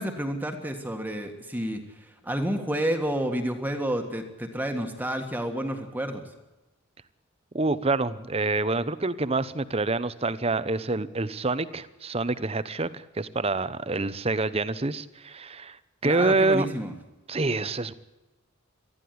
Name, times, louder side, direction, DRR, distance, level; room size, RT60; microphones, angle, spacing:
voice 1, 0.0-6.2 16.0-16.9, right 1 dB, 10° right, 4 dB, 1.7 m, -30 dB
voice 2, 7.5-15.8 16.0-16.7 17.3-17.9, right 3 dB, 30° right, 14 dB, 0.9 m, -27 dB
19.5 x 13.5 x 9.6 m, 1.0 s
head